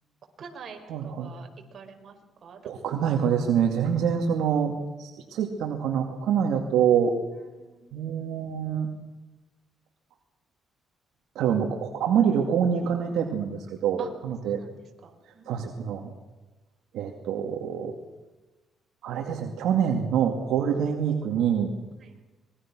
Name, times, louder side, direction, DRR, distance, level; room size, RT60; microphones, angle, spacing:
voice 1, 0.4-0.8 1.0-1.5 1.7-2.1 2.4-2.7 3.1-3.2 7.6-7.8 14.0-14.1 14.6-14.7 15.3-15.5 22.0-22.2, right 6 dB, 50° right, 4 dB, 5.0 m, -44 dB
voice 2, 0.9-1.3 2.6-4.7 5.0-7.1 7.9-8.9 11.4-14.6 15.5-16.1 16.9-17.9 19.0-21.7, right 8 dB, 85° right, 3 dB, 2.4 m, -25 dB
26.0 x 21.5 x 6.2 m, 1.1 s
cardioid pair, 90°, 0 cm